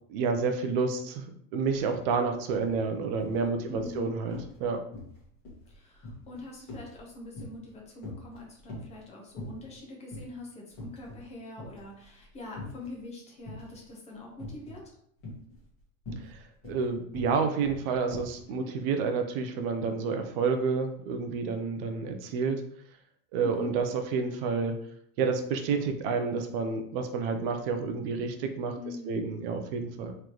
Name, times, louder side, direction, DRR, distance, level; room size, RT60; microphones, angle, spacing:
voice 1, 0.1-4.8 16.2-22.6 23.3-24.7 25.2-28.8 29.1-30.1, right 5 dB, 45° right, 6 dB, 0.5 m, -29 dB
sound 1, 1.6-1.8 2.1-2.8 3.2-4.0 4.3-4.6 4.9-7.7 8.0-9.0 9.4-9.8 10.1-10.3 10.7-11.3 11.6-12.9 13.5-13.9 14.4-14.9 15.2-18.4, left 2 dB, 30° left, 1.6 m, -43 dB
voice 2, 3.7-4.1 5.7-14.9 18.5-18.7 23.4-23.7 28.8-29.3, left 2 dB, 15° left, -2 dB, 0.8 m, -44 dB
3.8 x 3.3 x 3.0 m, 0.67 s
supercardioid pair, 170°, 42 cm